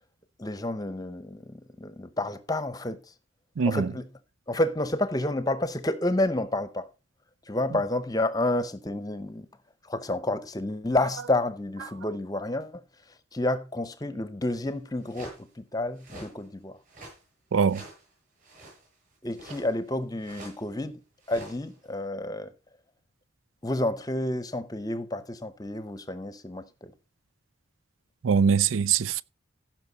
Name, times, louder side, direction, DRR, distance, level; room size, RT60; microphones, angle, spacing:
voice 1, 0.4-3.0 3.6-4.0 4.5-6.9 7.5-9.5 9.9-12.8 13.3-16.8 19.2-21.0 21.3-22.5 23.6-26.9, left 1 dB, 20° left, 0.8 m, -30 dB
sound 1, 14.7-14.8 15.0-15.4 16.0-16.3 16.8-17.2 17.6-18.0 18.4-18.9 19.3-19.9 20.2-20.7 21.2-21.8, right 2 dB, 40° right, 7.8 m, -46 dB
voice 2, 17.5-17.8 28.2-29.2, right 6 dB, 70° right, 0.4 m, -22 dB
15.5 x 6.1 x 4.0 m
head